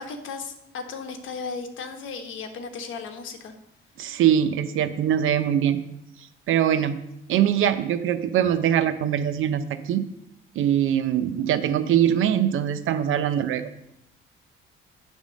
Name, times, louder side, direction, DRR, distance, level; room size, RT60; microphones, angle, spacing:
voice 1, 0.0-3.5, left 4 dB, 70° left, 6 dB, 1.1 m, -35 dB
voice 2, 4.0-5.8 6.5-7.0 7.3-10.0 10.6-13.7, right 10 dB, 75° right, 10 dB, 0.6 m, -22 dB
9.1 x 3.6 x 6.2 m, 0.81 s
cardioid pair, 115°, 21 cm